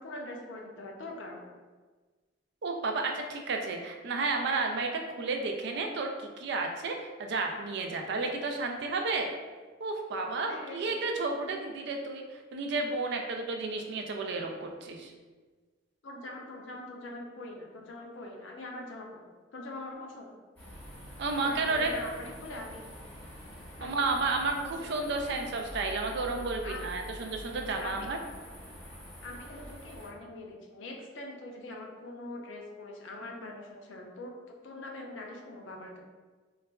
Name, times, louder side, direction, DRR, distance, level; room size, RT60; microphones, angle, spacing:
voice 1, 0.0-1.5 10.5-11.0 16.0-19.3 19.5-20.4 21.3-22.9 23.8-23.9 24.6-24.7 26.6-27.0 27.8-28.1 29.2-36.0, left 2 dB, 80° left, 1 dB, 0.5 m, -43 dB
voice 2, 2.6-4.9 5.2-9.3 9.8-15.1 21.2-21.9 23.8-28.2, right 3 dB, 65° right, 3 dB, 0.4 m, -32 dB
sound 1, 20.6-30.1, equal, 10° left, 0.8 m, -46 dB
3.8 x 2.3 x 2.3 m, 1.4 s
head